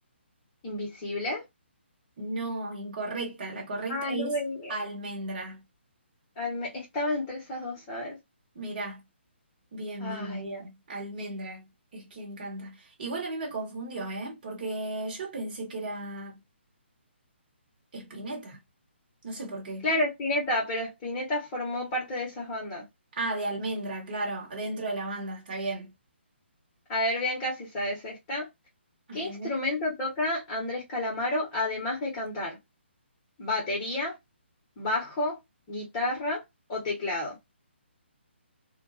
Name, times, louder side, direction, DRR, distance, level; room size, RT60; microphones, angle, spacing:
voice 1, 0.6-1.4 3.9-4.7 6.4-8.2 10.0-10.6 19.8-22.8 26.9-28.5 29.1-32.6 33.4-34.1 34.8-35.3 35.7-36.4 36.7-37.3, left 1 dB, 25° left, 1.1 m, -30 dB
voice 2, 2.2-4.3 4.7-5.6 8.5-9.0 9.7-11.7 11.9-16.4 17.9-18.6 19.2-19.9 23.1-25.9 29.1-29.6, right 2 dB, 45° right, 1.2 m, -35 dB
2.4 x 2.3 x 2.4 m
figure-of-eight pair, 140°, 6 cm